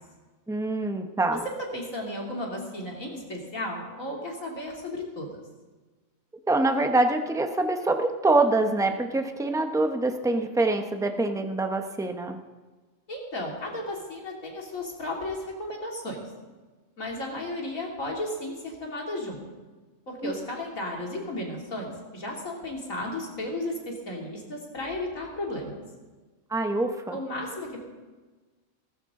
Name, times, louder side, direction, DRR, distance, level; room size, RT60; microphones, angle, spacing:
voice 1, 0.5-1.4 6.5-12.4 20.2-20.3 26.5-27.2, right 2 dB, 5° right, 5 dB, 0.8 m, -25 dB
voice 2, 1.7-5.4 13.1-16.2 17.0-19.4 20.1-25.8 27.1-27.8, left 1 dB, 75° left, -2 dB, 3.4 m, -34 dB
18.0 x 15.0 x 3.8 m, 1.3 s
omnidirectional pair, 1.4 m